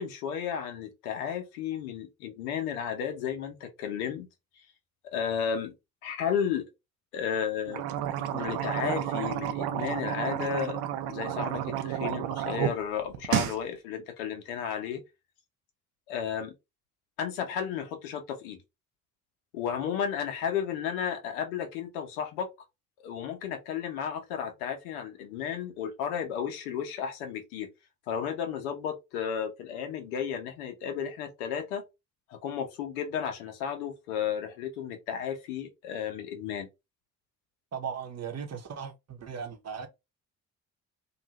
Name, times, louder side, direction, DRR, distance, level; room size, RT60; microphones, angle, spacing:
voice 1, 0.0-4.3 5.1-5.8 6.0-6.7 7.1-7.8 8.3-10.8 11.1-15.0 16.1-16.5 17.2-18.6 19.5-22.5 23.0-27.7 28.1-31.8 32.3-36.7, left 8 dB, 75° left, 0.8 m, -33 dB
sound 1, 7.7-12.7 13.0-13.6, right 11 dB, 60° right, 0.6 m, -31 dB
voice 2, 37.7-39.9, right 7 dB, 35° right, 0.9 m, -37 dB
2.6 x 2.4 x 3.0 m
figure-of-eight pair, 45°, 44 cm